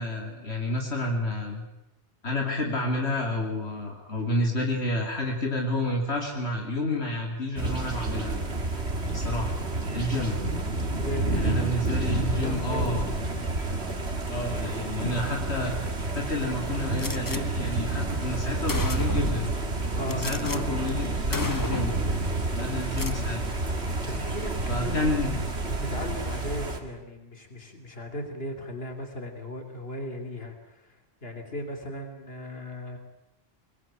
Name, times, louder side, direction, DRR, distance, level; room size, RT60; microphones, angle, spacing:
voice 1, 0.0-1.6 2.2-8.3 9.1-9.6 9.9-10.4 11.3-13.0 14.2-15.8 16.1-19.5 20.2-22.0 22.5-23.5 24.7-25.3, left 1 dB, 80° left, 0 dB, 3.2 m, -30 dB
sound 1, 7.6-26.8, right 2 dB, 75° right, 2.7 m, -29 dB
voice 2, 11.0-13.5 19.9-20.8 24.0-25.1 25.6-31.0 31.2-33.0, left 1 dB, 65° left, 4 dB, 3.6 m, -37 dB
Gunshot gunfire, 17.0-17.4 18.2-18.3 18.7-19.4 20.1-20.6 20.9-21.1 21.3-22.0 22.8-23.2, left 3 dB, 20° left, 0.8 m, -34 dB
24.0 x 21.0 x 9.0 m, 0.94 s
omnidirectional pair, 1.1 m